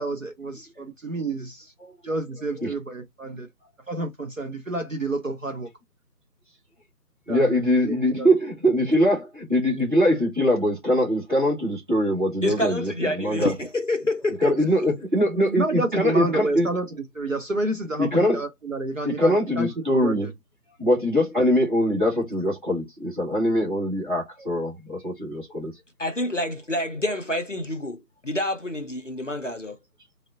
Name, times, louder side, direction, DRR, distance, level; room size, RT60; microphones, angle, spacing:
voice 1, 0.0-1.7 2.0-3.5 3.9-5.7 7.3-8.3 15.3-16.9 17.1-20.3, right 2 dB, 55° right, 0.5 m, -29 dB
voice 2, 7.3-13.5 14.4-16.7 18.0-18.4 19.0-20.3 20.8-25.7, equal, 30° right, 1.3 m, -22 dB
voice 3, 12.4-14.6 26.0-29.8, left 1 dB, 50° left, 0.5 m, -27 dB
3.5 x 2.1 x 2.3 m
figure-of-eight pair, 160°, 48 cm